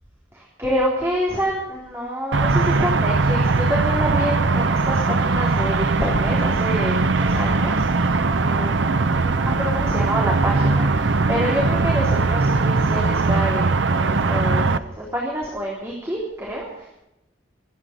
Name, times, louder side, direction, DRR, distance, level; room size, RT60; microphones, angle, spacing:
voice 1, 0.3-17.0, equal, 15° right, -5 dB, 3.6 m, -27 dB
sound 1, 2.3-14.8, right 3 dB, 80° right, 0.8 m, -20 dB
24.0 x 10.0 x 5.2 m, 0.86 s
head